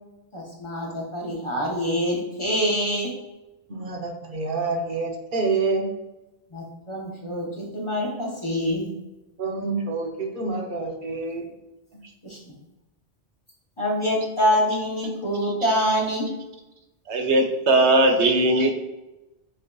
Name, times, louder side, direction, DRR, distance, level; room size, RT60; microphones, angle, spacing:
voice 1, 0.3-3.1 6.5-8.9 12.2-12.5 13.8-16.3, equal, 30° left, -3 dB, 0.8 m, -25 dB
voice 2, 3.7-5.9 9.4-11.4, right 3 dB, 55° right, 1 dB, 0.8 m, -27 dB
voice 3, 17.1-18.7, right 2 dB, 85° right, 3 dB, 1.0 m, -19 dB
7.4 x 2.7 x 2.2 m, 1.0 s
omnidirectional pair, 1.1 m